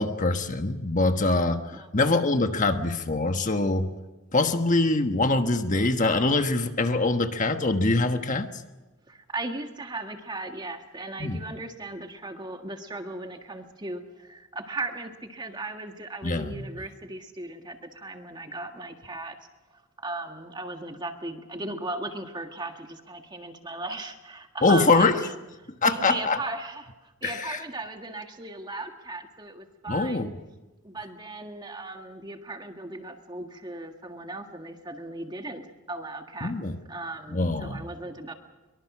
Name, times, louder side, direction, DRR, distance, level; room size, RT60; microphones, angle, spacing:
voice 1, 0.0-3.9 4.3-8.5 11.2-11.4 16.2-16.8 24.6-25.2 25.8-26.4 27.2-27.6 29.9-30.3 36.4-36.8 37.3-37.9, left 2 dB, 35° left, 7 dB, 1.3 m, -24 dB
voice 2, 1.7-2.1 9.1-19.4 19.7-25.3 25.8-30.3 30.8-36.5 36.9-38.3, right 2 dB, 20° right, 5 dB, 1.7 m, -37 dB
23.5 x 23.5 x 6.1 m, 1.1 s
head